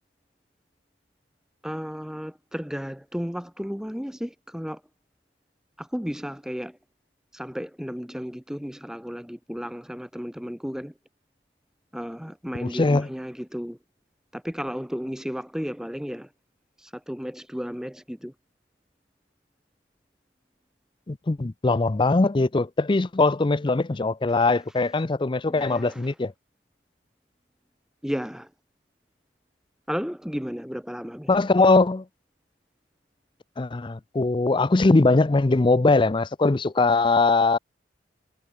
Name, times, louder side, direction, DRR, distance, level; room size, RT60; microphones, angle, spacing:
voice 1, 1.6-4.8 5.8-6.8 7.3-10.9 11.9-13.8 14.3-16.3 16.8-18.3 24.3-24.4 25.5-26.1 28.0-28.5 29.9-31.5, equal, 5° right, 1.2 m, -33 dB
voice 2, 12.6-13.1 21.1-26.3 31.3-32.0 33.6-37.6, left 3 dB, 25° left, 0.5 m, -21 dB
head